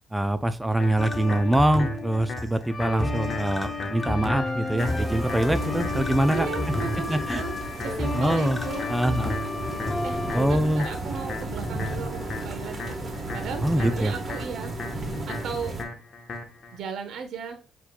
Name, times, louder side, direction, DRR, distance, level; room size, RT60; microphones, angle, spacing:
voice 1, 0.1-6.5 7.1-7.4 8.1-8.6 8.9-9.4 10.3-10.9 13.6-14.1, right 1 dB, 10° right, 9 dB, 0.4 m, -24 dB
sound 1, 0.8-16.8, left 3 dB, 50° left, 1.0 m, -39 dB
sound 2, 1.0-10.6, left 2 dB, 20° left, 0.7 m, -30 dB
sound 3, 4.8-15.8, right 2 dB, 40° right, 1.3 m, -34 dB
voice 2, 6.3-8.8 10.0-14.8 15.3-15.7 16.7-17.6, right 6 dB, 75° right, 6 dB, 1.1 m, -36 dB
7.9 x 3.0 x 2.2 m, 0.34 s
cardioid pair, 90°, 0 cm